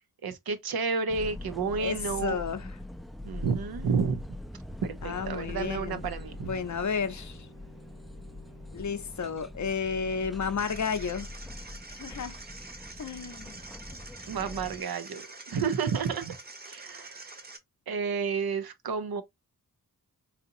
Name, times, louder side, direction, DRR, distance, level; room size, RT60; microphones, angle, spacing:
voice 1, 0.2-2.4 3.2-4.2 4.8-6.5 14.3-16.3 16.6-17.4 17.9-19.2, right 5 dB, 85° right, 0.7 m, -31 dB
sound 1, 1.1-14.8, left 1 dB, ahead, 0.3 m, -43 dB
voice 2, 1.8-2.7 5.0-6.0 6.4-7.5 8.7-11.3 11.9-12.3 13.0-13.6, left 6 dB, 55° left, 0.6 m, -32 dB
Bowed string instrument, 5.2-10.0, equal, 55° right, 1.9 m, -53 dB
sound 2, 10.6-17.6, right 3 dB, 25° right, 0.8 m, -46 dB
4.1 x 2.8 x 2.5 m
wide cardioid pair, 75°, 35 cm